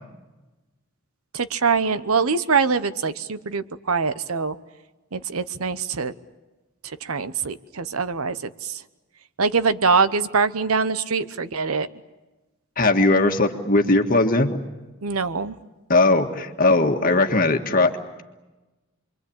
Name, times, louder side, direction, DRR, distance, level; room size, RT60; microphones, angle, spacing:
voice 1, 1.3-4.6 5.1-6.1 7.0-8.4 8.6-8.8 9.4-11.9 15.0-15.6, right 5 dB, 85° right, 13 dB, 1.0 m, -23 dB
voice 2, 12.8-14.6 15.9-17.9, left 2 dB, 40° left, 4 dB, 1.8 m, -19 dB
28.5 x 23.5 x 8.7 m, 1.1 s
head